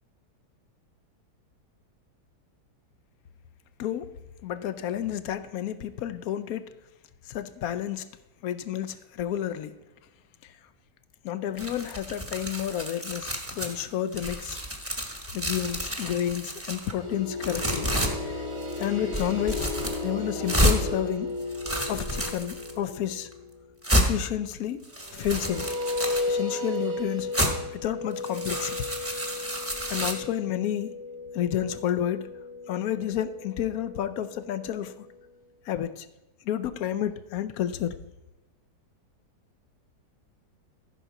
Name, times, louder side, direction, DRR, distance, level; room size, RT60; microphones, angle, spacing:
voice 1, 3.8-4.1 4.4-6.7 7.3-8.0 8.4-9.7 11.2-14.6 15.3-17.9 18.2-18.3 18.8-19.7 20.0-21.3 21.9-23.3 23.9-24.8 25.1-25.7 26.3-27.3 27.7-28.8 29.9-31.0 31.3-32.3 32.7-34.9 35.7-36.1 36.4-37.9, left 10 dB, 70° left, 13 dB, 1.0 m, -30 dB
sound 1, 11.6-13.8 14.1-16.9 17.4-18.1 18.6-18.9 19.1-20.0 20.5-20.8 21.4-22.7 23.3-23.4 23.8-24.1 24.8-26.3 27.3-27.5 28.1-30.1, equal, 10° right, 0.9 m, -29 dB
sound 2, 16.9-23.6 25.0-35.3, left 3 dB, 75° right, 3.5 m, -35 dB
14.0 x 5.4 x 5.9 m, 1.0 s
omnidirectional pair, 1.8 m